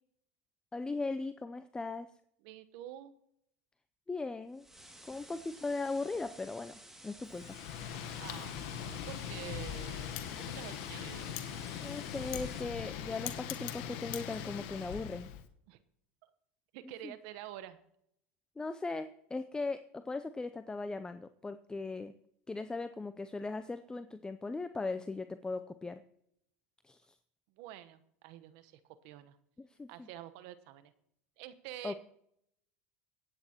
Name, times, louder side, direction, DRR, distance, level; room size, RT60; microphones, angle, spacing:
voice 1, 0.7-2.1 4.1-4.7 5.1-7.6 11.8-15.3 17.0-17.1 18.6-22.1 22.5-26.0 26.8-27.1 29.6-30.1 31.8-31.9, left 3 dB, 10° left, 11 dB, 0.5 m, -38 dB
voice 2, 2.4-3.1 8.2-10.2 10.5-11.3 15.7-15.8 16.2-16.3 16.7-17.8 27.6-29.4 29.9-30.9 31.4-31.9, right 13 dB, 65° right, 13 dB, 1.0 m, -48 dB
sound 1, 4.5-12.6, right 1 dB, 5° right, 2.2 m, -54 dB
Wind, 7.3-15.4, left 9 dB, 70° left, 1.1 m, -41 dB
24.0 x 8.8 x 2.9 m, 0.75 s
hypercardioid pair, 95°, 6 cm